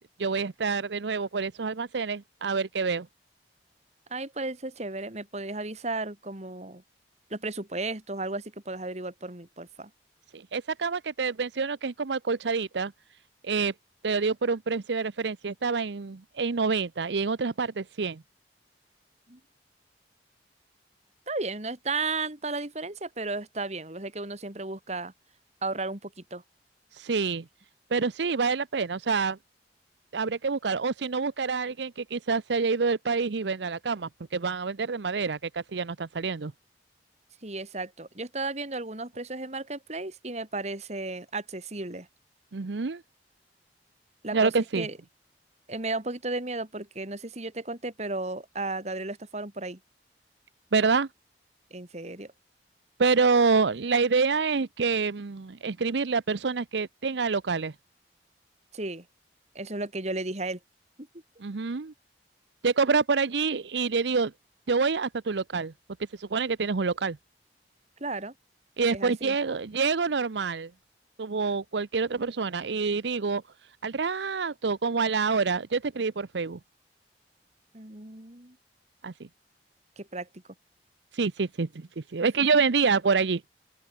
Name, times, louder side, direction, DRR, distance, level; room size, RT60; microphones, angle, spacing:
voice 1, 0.2-3.1 10.3-12.9 13.4-13.7 14.0-18.2 26.9-27.4 27.9-29.4 30.1-36.5 42.5-43.0 44.3-44.9 50.7-51.1 53.0-57.7 61.4-61.9 62.6-64.3 64.7-65.7 66.2-67.2 68.8-70.7 71.2-73.4 73.8-76.6 79.0-79.1 81.1-83.4, right 4 dB, 85° right, 0.7 m, -27 dB
voice 2, 4.1-6.8 7.3-9.9 19.3-19.4 21.3-25.1 25.6-26.4 37.4-42.1 44.2-45.0 45.7-49.8 51.7-52.3 58.7-59.1 59.5-60.6 68.0-68.3 68.9-69.4 77.7-78.6 80.0-80.3 82.4-82.5, right 2 dB, 40° right, 2.7 m, -34 dB
open air
head